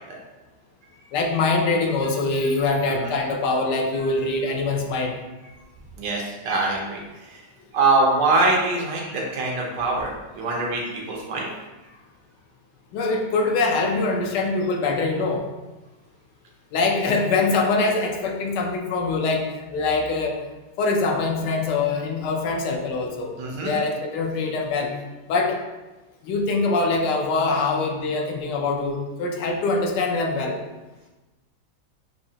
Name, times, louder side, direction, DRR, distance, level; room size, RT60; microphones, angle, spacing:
voice 1, 1.1-5.2 12.9-15.5 16.7-19.5 19.7-20.4 20.8-23.3 23.6-24.9 25.3-25.6 26.2-30.6, left 3 dB, 75° left, 2 dB, 1.3 m, -23 dB
voice 2, 6.0-7.0 7.7-11.5 23.4-23.7, right 3 dB, 80° right, -1 dB, 1.5 m, -23 dB
6.3 x 2.8 x 2.8 m, 1.1 s
omnidirectional pair, 1.9 m